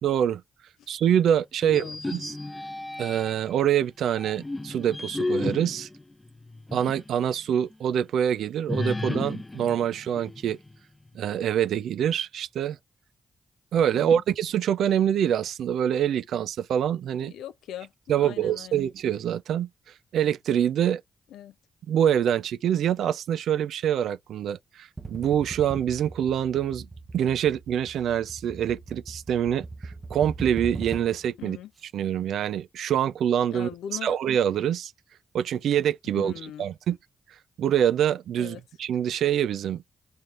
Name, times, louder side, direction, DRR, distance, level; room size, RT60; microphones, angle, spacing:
voice 1, 0.0-0.4 0.9-1.8 2.1-2.4 3.0-5.9 6.7-10.6 11.1-12.8 13.7-17.3 18.1-19.7 20.1-21.0 21.9-26.9 27.1-31.6 31.9-33.7 34.0-34.9 35.3-37.0 37.6-39.8, right 9 dB, 80° right, 0.3 m, -25 dB
voice 2, 1.6-2.0 13.9-14.2 17.3-18.8 21.3-21.5 31.4-31.7 33.5-34.1 36.2-36.7 38.4-38.6, left 10 dB, 85° left, 0.3 m, -40 dB
sound 1, 1.7-3.5 4.1-7.1 7.5-7.6 8.7-10.8, left 2 dB, 20° left, 0.6 m, -33 dB
sound 2, 25.0-31.3, right 3 dB, 35° right, 0.7 m, -40 dB
4.0 x 3.2 x 2.4 m
hypercardioid pair, 40°, 0 cm